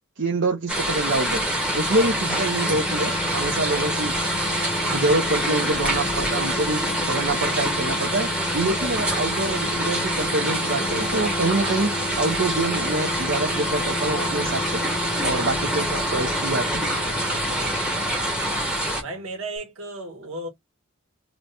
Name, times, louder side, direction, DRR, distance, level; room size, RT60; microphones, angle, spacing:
voice 1, 0.2-1.4 1.7-4.1 4.9-6.8 7.1-8.3 8.5-11.9 12.2-14.8 15.2-16.8, right 2 dB, 55° right, 0.6 m, -25 dB
sound 1, 0.7-19.0, right 1 dB, 5° right, 0.9 m, -26 dB
sound 2, 1.0-19.3 19.6-19.7, left 2 dB, 35° left, 0.5 m, -34 dB
voice 2, 17.4-17.9 18.9-20.5, right 2 dB, 75° right, 1.3 m, -35 dB
3.1 x 2.1 x 4.0 m
head